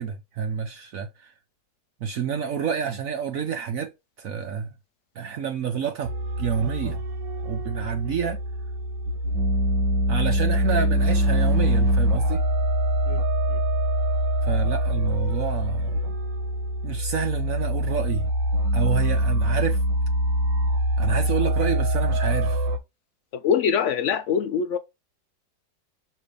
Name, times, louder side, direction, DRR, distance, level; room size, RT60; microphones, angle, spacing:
voice 1, 0.0-1.3 2.0-3.9 4.2-4.7 5.2-7.0 7.4-8.4 10.1-12.4 14.4-16.1 16.8-18.3 18.7-19.8 21.0-22.6, right 7 dB, 60° right, 1.1 m, -29 dB
sound 1, 6.0-22.8, equal, 85° right, 1.7 m, -24 dB
voice 2, 23.3-24.8, left 7 dB, 80° left, 0.6 m, -24 dB
6.3 x 3.2 x 5.2 m
omnidirectional pair, 1.9 m